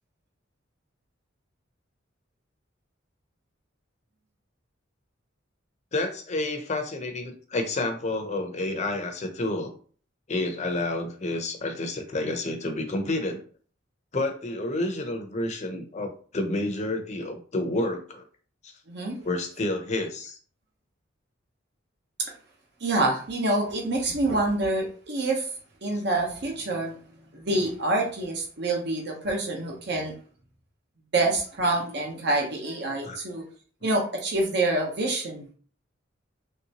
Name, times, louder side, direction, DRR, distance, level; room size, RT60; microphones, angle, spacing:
voice 1, 5.9-9.7 10.3-13.4 14.1-18.2 18.6-18.7 19.2-20.4 33.0-33.2, left 2 dB, 35° left, 5 dB, 0.6 m, -29 dB
voice 2, 18.9-19.2 22.8-25.4 25.8-26.9 27.3-30.1 31.1-33.4 33.8-35.5, right 2 dB, 60° right, 0 dB, 0.9 m, -26 dB
3.2 x 2.7 x 2.9 m, 0.43 s
head